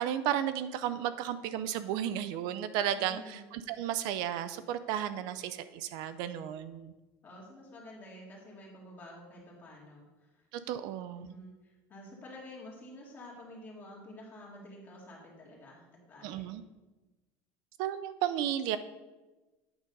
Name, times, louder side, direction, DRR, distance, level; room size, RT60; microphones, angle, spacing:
voice 1, 0.0-6.9 10.5-11.3 16.2-16.6 17.8-18.8, right 11 dB, 65° right, 13 dB, 0.4 m, -33 dB
voice 2, 2.9-3.4 7.2-10.5 10.9-16.5, left 1 dB, 25° left, -3 dB, 2.2 m, -50 dB
8.6 x 3.9 x 5.3 m, 1.1 s
cardioid pair, 150°, 8 cm